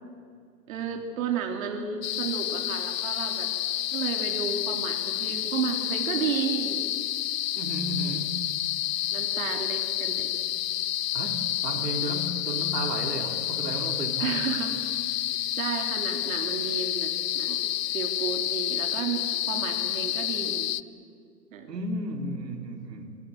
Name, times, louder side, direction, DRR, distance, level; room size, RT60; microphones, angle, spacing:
voice 1, 0.7-3.5 3.9-6.8 8.0-8.1 9.1-10.5 14.2-14.7 15.5-17.6 17.9-20.7 21.5-21.7, right 7 dB, 55° right, 4 dB, 3.5 m, -32 dB
sound 1, 2.0-20.8, left 13 dB, 75° left, 0.8 m, -29 dB
voice 2, 7.5-8.4 11.1-14.4 21.7-23.2, right 1 dB, 80° right, 5 dB, 3.8 m, -33 dB
27.5 x 23.0 x 8.0 m, 2.1 s
hypercardioid pair, 155°, 48 cm